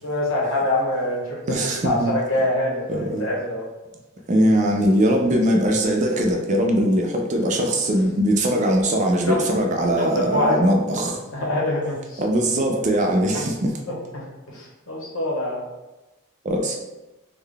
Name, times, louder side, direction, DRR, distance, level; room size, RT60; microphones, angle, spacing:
voice 1, 0.0-1.6 1.8-3.7 9.3-9.4 10.0-10.6 11.3-12.2 13.3-13.5 13.9-15.6, left 1 dB, 65° left, -3 dB, 0.9 m, -25 dB
voice 2, 1.5-2.1 2.9-3.3 4.3-11.2 12.2-13.7 16.4-16.8, equal, 35° right, 2 dB, 0.4 m, -21 dB
3.8 x 2.1 x 3.3 m, 1.0 s
head